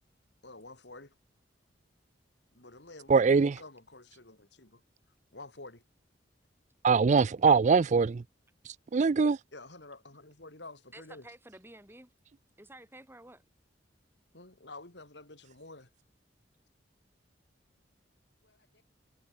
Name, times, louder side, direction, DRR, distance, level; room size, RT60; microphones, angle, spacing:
voice 1, 0.4-1.1 2.5-4.8 5.3-5.8 9.5-11.3 14.3-15.9 18.4-18.8, left 2 dB, 65° left, 3.7 m, -49 dB
voice 2, 3.1-3.5 6.8-8.2 8.7-9.4, right 5 dB, 40° right, 0.4 m, -23 dB
voice 3, 10.9-12.1 12.6-13.4, right 1 dB, 15° right, 7.2 m, -51 dB
head